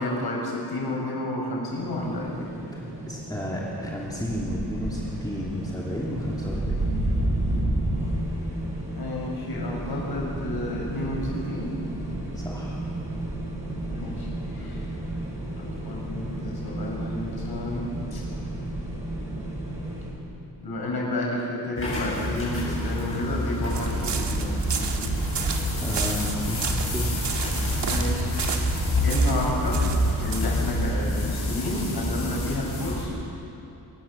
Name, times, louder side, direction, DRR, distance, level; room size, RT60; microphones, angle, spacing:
voice 1, 0.0-2.4 8.9-11.8 13.9-14.9 15.5-18.2 20.6-25.2 27.9-28.3 28.7-29.9 30.2-33.1, left 1 dB, 65° left, -3 dB, 7.2 m, -31 dB
sound 1, 1.8-20.1, right 1 dB, 15° right, 7.5 m, -31 dB
voice 2, 2.7-6.8 12.3-12.8 14.6-14.7 25.8-27.1, left 1 dB, 10° left, -5 dB, 2.8 m, -32 dB
sound 2, 21.8-33.0, left 1 dB, 30° left, 7.8 m, -28 dB
sound 3, 23.7-30.4, right 5 dB, 80° right, 2.0 m, -30 dB
25.0 x 20.5 x 7.2 m, 2.8 s
wide cardioid pair, 160°, 41 cm